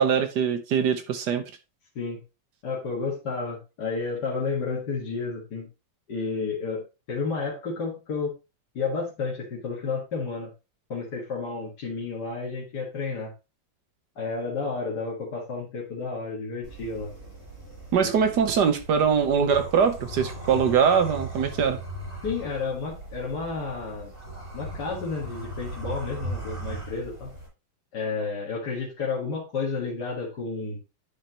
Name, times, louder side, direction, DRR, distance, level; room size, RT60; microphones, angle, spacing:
voice 1, 0.0-1.4 17.9-21.8, right 7 dB, 65° right, 1.5 m, -22 dB
voice 2, 2.6-5.7 6.1-8.3 8.7-10.5 10.9-13.3 14.2-17.1 22.2-24.1 24.5-27.3 27.9-30.8, left 4 dB, 60° left, 2.3 m, -31 dB
sound 1, 16.6-27.5, right 1 dB, 35° right, 5.7 m, -38 dB
10.0 x 5.1 x 2.9 m
omnidirectional pair, 2.1 m